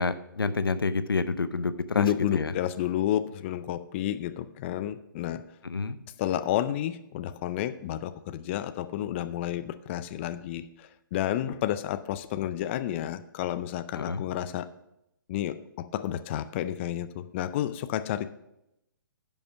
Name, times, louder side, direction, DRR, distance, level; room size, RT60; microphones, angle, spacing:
voice 1, 0.0-2.5 5.6-6.0 14.0-14.2, left 4 dB, 90° left, 13 dB, 0.7 m, -28 dB
voice 2, 1.9-5.4 6.2-14.7 15.3-18.3, left 12 dB, 35° left, 12 dB, 0.4 m, -31 dB
10.5 x 5.5 x 6.0 m, 0.84 s
hypercardioid pair, 135°, 12 cm